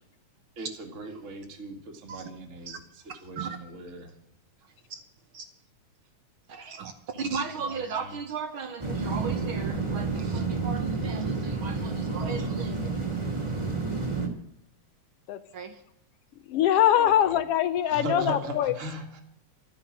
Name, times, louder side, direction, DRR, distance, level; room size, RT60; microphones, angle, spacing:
voice 1, 0.6-4.1 7.1-8.2 16.9-17.4 17.9-19.2, right 2 dB, 30° right, 3 dB, 2.0 m, -38 dB
voice 2, 6.5-12.9 15.5-15.8, right 5 dB, 60° right, 9 dB, 1.5 m, -36 dB
sound 1, 8.8-14.3, right 4 dB, 10° right, 1.8 m, -30 dB
voice 3, 16.5-18.8, left 11 dB, 75° left, 14 dB, 1.4 m, -23 dB
13.0 x 9.6 x 8.6 m, 0.76 s
omnidirectional pair, 3.3 m